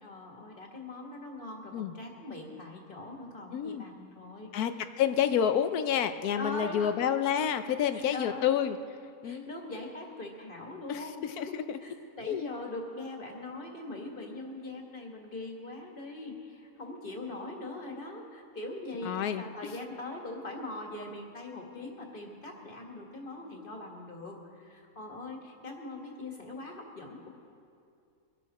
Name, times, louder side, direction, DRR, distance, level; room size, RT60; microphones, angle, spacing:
voice 1, 0.0-4.5 6.4-6.9 7.9-8.5 9.2-27.3, left 2 dB, 35° left, 1 dB, 2.0 m, -42 dB
voice 2, 3.5-3.8 4.5-8.8 9.2-9.5 10.9-11.8 12.3-12.5 19.0-19.7, left 9 dB, 85° left, 10 dB, 1.2 m, -29 dB
23.0 x 11.5 x 4.2 m, 2.4 s
omnidirectional pair, 1.5 m